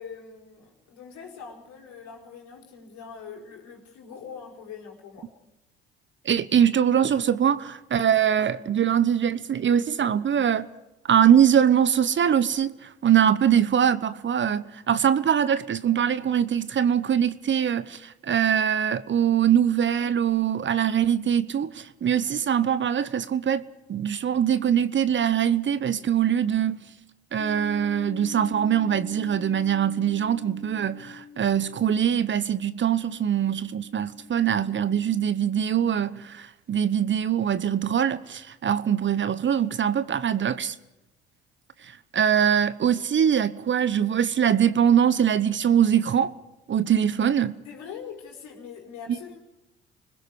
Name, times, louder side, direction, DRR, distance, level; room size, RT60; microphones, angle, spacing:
voice 1, 0.0-5.3 47.6-49.4, left 6 dB, 65° left, 4.8 m, -42 dB
voice 2, 6.2-10.7 11.1-23.6 23.9-26.8 27.3-40.7 41.8-46.3 46.7-47.5, right 9 dB, 40° right, 1.0 m, -23 dB
sound 1, 27.4-35.2, left 6 dB, 30° left, 4.2 m, -44 dB
30.0 x 21.0 x 4.9 m
hypercardioid pair, 55°, 30 cm